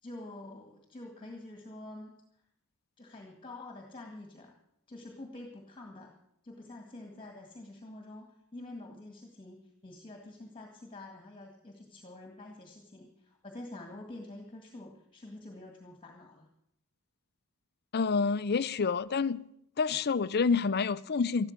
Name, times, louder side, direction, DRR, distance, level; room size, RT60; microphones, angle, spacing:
voice 1, 0.0-2.4 3.0-4.5 4.9-6.1 6.4-16.5, left 2 dB, 25° left, 1.9 m, -47 dB
voice 2, 17.9-19.4 19.8-21.5, left 5 dB, 45° left, 0.5 m, -28 dB
14.0 x 12.0 x 6.6 m
head